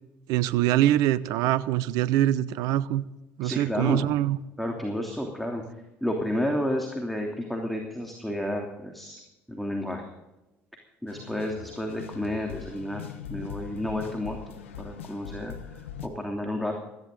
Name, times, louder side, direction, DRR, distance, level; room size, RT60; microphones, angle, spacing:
voice 1, 0.3-3.0 3.4-4.4, right 13 dB, 70° right, 18 dB, 0.7 m, -24 dB
voice 2, 3.4-4.0 4.6-5.6 6.0-9.2 9.5-10.1 11.0-16.7, left 1 dB, ahead, 1 dB, 3.0 m, -31 dB
sound 1, 11.1-16.1, left 7 dB, 90° left, 1.2 m, -41 dB
17.0 x 15.0 x 3.8 m, 0.97 s
hypercardioid pair, 65°, 7 cm